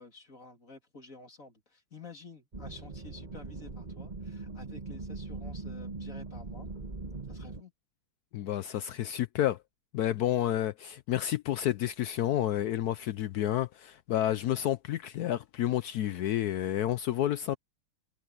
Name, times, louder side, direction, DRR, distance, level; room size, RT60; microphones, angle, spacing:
voice 1, 0.0-6.7 7.3-7.7, left 3 dB, 35° left, 3.4 m, -51 dB
sound 1, 2.5-7.6, right 3 dB, 20° right, 1.7 m, -41 dB
voice 2, 8.3-9.6 9.9-17.6, left 12 dB, 90° left, 0.8 m, -30 dB
omnidirectional pair, 2.3 m